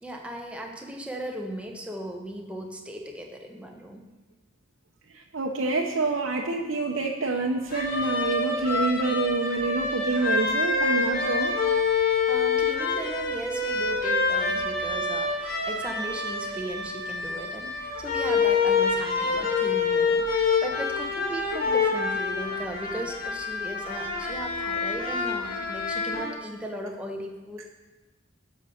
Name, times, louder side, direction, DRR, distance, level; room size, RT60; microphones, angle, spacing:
voice 1, 0.0-4.0 12.3-27.7, right 1 dB, 5° right, 1 dB, 1.1 m, -37 dB
voice 2, 5.3-11.5 22.4-22.6, right 3 dB, 80° right, 0 dB, 0.8 m, -27 dB
sound 1, 7.7-26.3, left 4 dB, 50° left, 2.2 m, -27 dB
10.5 x 5.4 x 7.0 m, 1.2 s
head